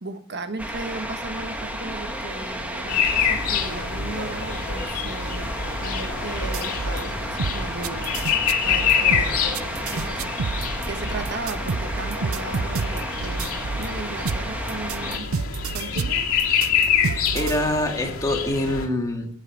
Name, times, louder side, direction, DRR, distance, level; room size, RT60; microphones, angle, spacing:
voice 1, 0.0-5.5 5.8-8.4 8.6-10.3 10.9-15.3 15.7-16.3, right 3 dB, 55° right, 8 dB, 1.4 m, -36 dB
sound 1, 0.6-15.2, equal, 5° right, 1.7 m, -32 dB
sound 2, 2.9-18.9, left 7 dB, 70° left, 3.2 m, -27 dB
sound 3, 6.4-7.0 7.4-13.9 14.2-17.6, right 4 dB, 85° right, 0.6 m, -29 dB
voice 2, 17.0-19.3, left 1 dB, 15° left, 2 dB, 2.1 m, -25 dB
14.5 x 8.1 x 7.6 m, 0.67 s
head